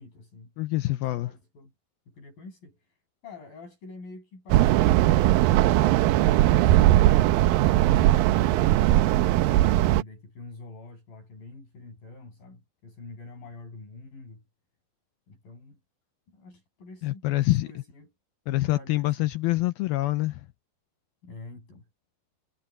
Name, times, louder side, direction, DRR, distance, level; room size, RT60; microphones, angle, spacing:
voice 1, 0.0-0.5 0.8-1.7 2.1-3.0 3.2-5.9 6.2-7.0 7.8-14.4 15.3-15.8 16.3-18.1 18.5-19.3 21.2-21.8, left 3 dB, 55° left, 9.6 m, -46 dB
voice 2, 0.6-1.3 17.0-17.7 18.5-20.4, left 18 dB, 90° left, 2.2 m, -25 dB
sound 1, 4.5-10.0, right 15 dB, 85° right, 2.0 m, -19 dB
omnidirectional pair, 4.9 m